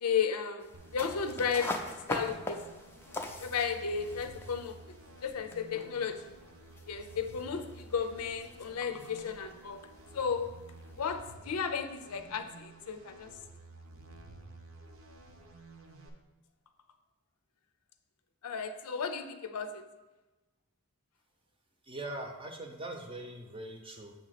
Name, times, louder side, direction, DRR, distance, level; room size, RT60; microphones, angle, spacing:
voice 1, 0.0-1.8 2.1-2.8 3.4-4.8 5.2-6.3 6.9-9.9 10.1-10.5 11.0-13.3 18.4-19.8, left 6 dB, 90° left, 9 dB, 0.6 m, -34 dB
sound 1, 0.6-11.2, left 2 dB, 10° left, 0.4 m, -44 dB
sound 2, 0.7-16.1, right 2 dB, 65° right, 0.8 m, -52 dB
voice 2, 21.9-24.1, right 1 dB, 25° right, 3 dB, 0.7 m, -41 dB
7.5 x 2.9 x 5.8 m, 1.1 s
head